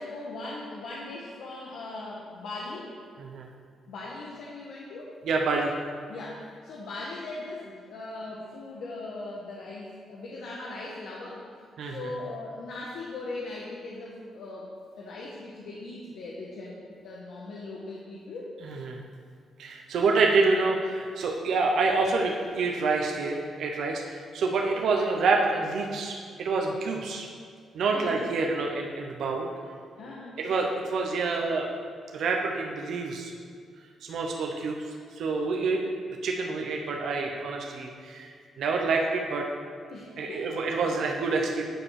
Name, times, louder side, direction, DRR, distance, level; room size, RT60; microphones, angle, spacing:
voice 1, 0.0-2.9 3.9-5.1 6.1-11.5 11.8-14.7 15.0-18.5 27.9-28.3 30.0-30.4 39.9-40.6, left 2 dB, 75° left, -4 dB, 1.4 m, -39 dB
voice 2, 5.2-5.7 11.8-12.1 18.6-19.0 19.6-27.3 27.7-29.5 30.4-31.7 32.1-33.3 34.0-34.8 35.2-35.8 36.2-39.5 40.2-41.6, right 3 dB, 65° right, 1 dB, 0.9 m, -27 dB
9.4 x 5.2 x 6.5 m, 2.1 s
cardioid pair, 155°, 0 cm